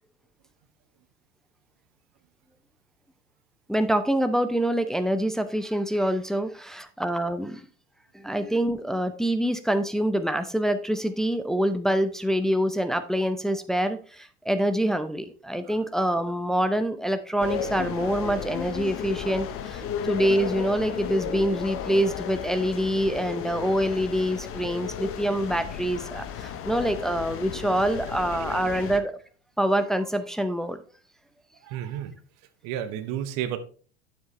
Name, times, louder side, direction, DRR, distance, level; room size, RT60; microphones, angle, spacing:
voice 1, 3.7-7.6 8.1-29.1 29.6-30.8, right 1 dB, ahead, 10 dB, 0.6 m, -26 dB
sound 1, 17.4-29.0, left 8 dB, 40° left, 1.0 m, -34 dB
voice 2, 31.6-32.1 32.6-33.6, right 10 dB, 50° right, 11 dB, 1.0 m, -32 dB
9.3 x 7.4 x 3.2 m, 0.41 s
figure-of-eight pair, 75°, 35 cm